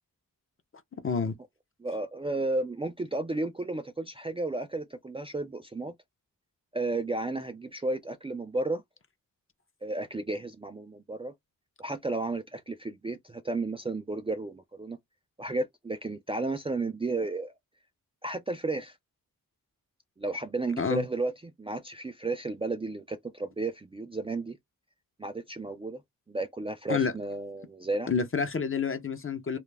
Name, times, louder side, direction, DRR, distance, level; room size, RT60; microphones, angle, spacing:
voice 1, 1.0-1.3 20.8-21.1 26.9-27.1 28.1-29.6, left 5 dB, 35° left, 0.6 m, -28 dB
voice 2, 1.8-5.9 6.7-8.8 9.8-11.3 11.8-15.0 15.4-17.5 18.2-19.0 20.2-24.6 25.2-26.0 26.3-28.1, right 2 dB, 15° right, 0.3 m, -33 dB
2.3 x 2.0 x 3.2 m
cardioid pair, 60°, 36 cm